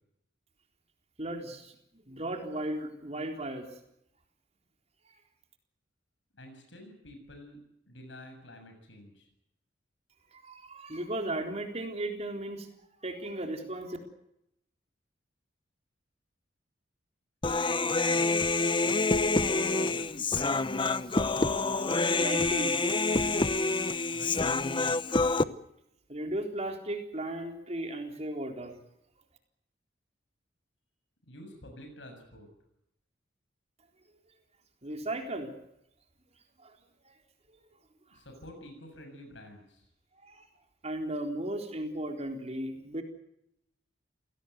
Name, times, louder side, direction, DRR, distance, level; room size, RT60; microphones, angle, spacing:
voice 1, 1.2-3.6 10.3-12.7 13.0-14.0 21.7-22.8 26.1-28.7 34.8-35.5 36.6-36.8 37.0-37.1 38.1-38.2 40.2-40.4 40.8-43.0, right 1 dB, 35° right, 4 dB, 3.9 m, -36 dB
voice 2, 6.3-7.6 7.9-9.3 19.8-20.8 24.1-24.4 31.3-32.5 38.1-39.9, equal, 70° left, 5 dB, 7.1 m, -49 dB
Human voice, 17.4-25.4, left 3 dB, 25° left, 0.9 m, -27 dB
28.5 x 18.0 x 8.1 m, 0.80 s
head